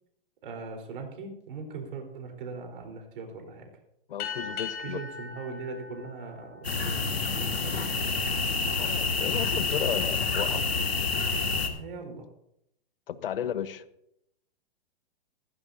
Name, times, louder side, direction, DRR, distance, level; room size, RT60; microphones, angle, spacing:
voice 1, 0.4-3.7 4.8-8.2 11.7-12.3, right 4 dB, 60° right, 3 dB, 4.2 m, -40 dB
voice 2, 4.1-5.0 8.8-10.6 13.1-13.8, left 9 dB, 65° left, 13 dB, 1.1 m, -33 dB
sound 1, 4.2-7.1, left 6 dB, 30° left, 3.4 m, -39 dB
sound 2, 6.6-11.7, left 4 dB, 85° left, 2.2 m, -28 dB
16.0 x 15.5 x 2.8 m, 0.77 s
hypercardioid pair, 115°, 30 cm